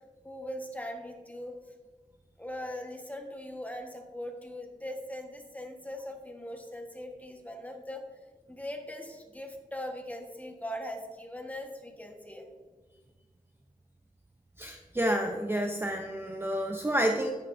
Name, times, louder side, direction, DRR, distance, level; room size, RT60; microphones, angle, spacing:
voice 1, 0.2-1.5 2.4-8.0 8.5-12.5, left 1 dB, 10° left, 3 dB, 1.2 m, -40 dB
voice 2, 14.6-17.3, equal, 15° right, 3 dB, 0.6 m, -29 dB
10.0 x 9.2 x 2.6 m, 1.4 s
wide cardioid pair, 95°, 15 cm